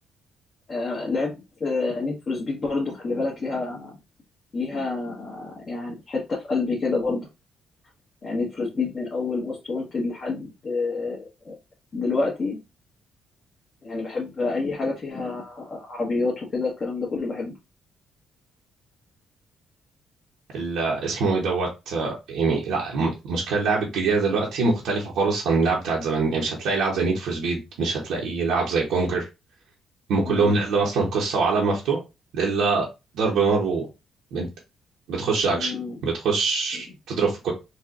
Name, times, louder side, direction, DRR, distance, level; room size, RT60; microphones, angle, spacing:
voice 1, 0.7-4.0 4.5-7.3 8.2-11.5 11.9-12.6 13.8-17.5 30.2-30.5 35.5-36.0, left 3 dB, 40° left, -4 dB, 1.1 m, -28 dB
voice 2, 20.5-29.3 30.1-32.0 32.3-32.9 33.1-33.9 34.3-34.5 35.1-35.7 36.0-37.5, right 4 dB, 85° right, -3 dB, 0.8 m, -24 dB
4.1 x 2.2 x 2.4 m, 0.26 s
cardioid pair, 90°, 0 cm